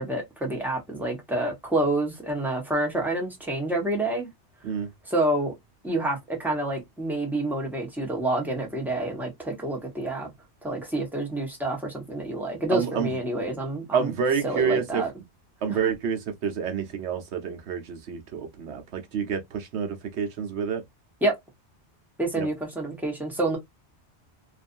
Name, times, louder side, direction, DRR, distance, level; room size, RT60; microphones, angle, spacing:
voice 1, 0.0-4.3 5.1-5.5 5.8-10.3 10.6-14.1 14.4-15.1 15.7-15.8 21.2-21.3 22.2-23.6, right 1 dB, ahead, 0.8 m, -28 dB
voice 2, 12.7-13.1 13.9-15.0 15.6-20.8 22.4-22.5, right 6 dB, 70° right, 1.0 m, -28 dB
2.5 x 2.4 x 2.5 m
omnidirectional pair, 1.2 m